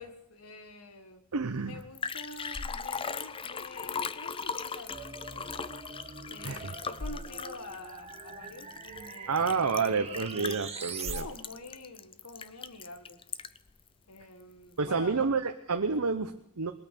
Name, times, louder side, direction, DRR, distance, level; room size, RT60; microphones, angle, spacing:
voice 1, 0.0-1.2 1.6-5.8 6.3-10.6 11.0-13.2 14.1-15.3 15.9-16.0, left 2 dB, 80° left, 7 dB, 1.6 m, -47 dB
voice 2, 1.3-1.8 6.4-6.7 9.3-11.3 14.8-16.7, right 4 dB, 80° right, 6 dB, 0.9 m, -29 dB
Liquid, 1.5-1.6 1.8-13.7 14.2-14.3, left 5 dB, 25° left, 0.5 m, -38 dB
sound 1, 4.9-11.2, right 5 dB, 30° right, 1.2 m, -43 dB
20.5 x 8.8 x 7.6 m, 0.80 s
head